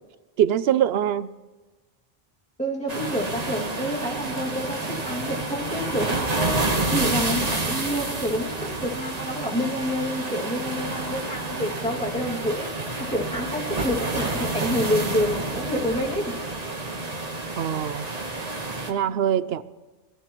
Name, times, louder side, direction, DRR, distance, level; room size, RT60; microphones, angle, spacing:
voice 1, 0.4-1.3 17.6-18.1 18.9-19.6, right 10 dB, 75° right, 14 dB, 0.8 m, -23 dB
voice 2, 2.6-16.4, equal, 5° left, -3 dB, 2.2 m, -28 dB
sound 1, 2.9-18.9, right 2 dB, 40° right, 1.3 m, -29 dB
22.0 x 13.5 x 3.0 m, 1.2 s
omnidirectional pair, 1.1 m